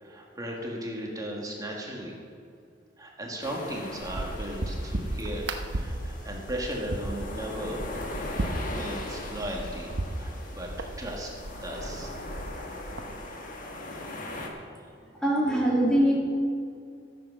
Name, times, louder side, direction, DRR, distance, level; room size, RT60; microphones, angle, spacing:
voice 1, 0.0-2.1 3.0-7.8 8.8-9.9 10.2-12.1 14.2-14.4, right 1 dB, 20° right, -1 dB, 1.8 m, -36 dB
sound 1, 3.4-14.5, left 1 dB, 50° left, 1.5 m, -40 dB
sound 2, 4.0-13.2, right 1 dB, 70° right, 0.9 m, -35 dB
voice 2, 15.2-16.2, right 1 dB, 5° left, -4 dB, 1.6 m, -22 dB
13.5 x 7.9 x 6.3 m, 2.4 s
head